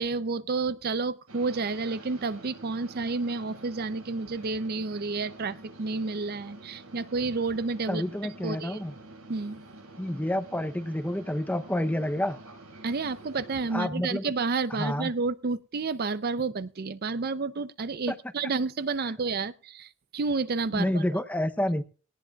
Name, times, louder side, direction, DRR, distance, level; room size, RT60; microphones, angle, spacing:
voice 1, 0.0-8.0 8.4-8.8 9.3-9.6 12.8-21.0, right 4 dB, 45° right, 14 dB, 0.5 m, -30 dB
sound 1, 1.3-13.7, right 2 dB, 75° right, 5.5 m, -48 dB
voice 2, 7.9-8.9 10.0-12.4 13.7-14.3 14.7-15.1 18.1-18.2 20.7-21.8, left 1 dB, 5° left, 11 dB, 0.7 m, -29 dB
18.5 x 18.0 x 2.4 m, 0.39 s
head